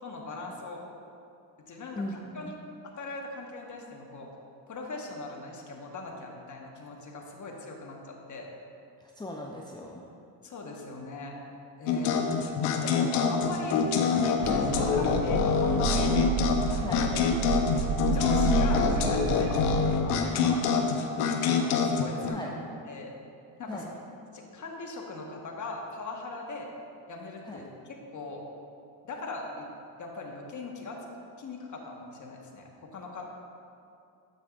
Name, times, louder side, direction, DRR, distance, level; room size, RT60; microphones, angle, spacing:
voice 1, 0.0-0.8 1.7-2.5 2.8-4.3 4.7-8.5 10.4-11.4 11.8-12.1 12.8-13.8 14.1-16.4 16.7-17.1 18.0-22.5 22.8-23.1 23.6-23.9 24.3-26.7 27.1-28.4 29.0-29.7 30.0-31.0 31.4-33.2, left 3 dB, 35° left, 0 dB, 1.4 m, -40 dB
voice 2, 2.0-2.5 9.2-10.0 11.9-12.4 16.8-17.0 22.3-22.5 23.7-23.9 27.5-27.6, left 1 dB, 10° left, -1 dB, 0.6 m, -38 dB
sound 1, 11.9-22.3, left 6 dB, 80° left, 0.9 m, -26 dB
sound 2, 14.4-20.0, right 7 dB, 80° right, 0.6 m, -30 dB
9.2 x 7.8 x 2.5 m, 2.6 s
supercardioid pair, 75°, 49 cm